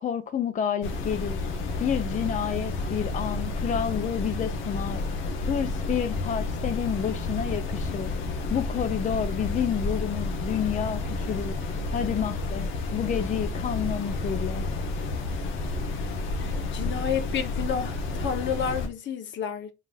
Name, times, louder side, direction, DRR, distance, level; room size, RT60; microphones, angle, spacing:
voice 1, 0.0-1.4 1.8-5.0 5.5-8.1 8.5-11.5 11.9-14.7, left 8 dB, 40° left, 0.5 m, -29 dB
sound 1, 0.8-18.9, left 3 dB, 90° left, 1.0 m, -30 dB
voice 2, 16.4-19.7, left 7 dB, 70° left, 0.8 m, -30 dB
4.0 x 3.7 x 2.4 m
cardioid pair, 90°, 20 cm